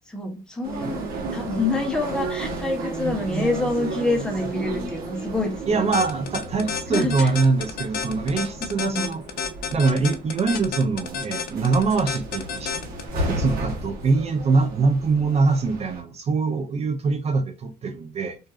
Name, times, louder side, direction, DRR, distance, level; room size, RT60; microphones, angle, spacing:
voice 1, 0.1-5.9 6.9-7.3 8.9-9.1, left 2 dB, 5° left, 0.7 m, -27 dB
sound 1, 0.6-16.0, right 2 dB, 60° right, 0.9 m, -33 dB
voice 2, 5.7-9.3 9.7-12.7 13.3-18.4, right 4 dB, 40° right, 0.5 m, -23 dB
sound 2, 5.9-13.1, left 6 dB, 60° left, 0.5 m, -30 dB
2.5 x 2.4 x 2.3 m
cardioid pair, 110°, 17 cm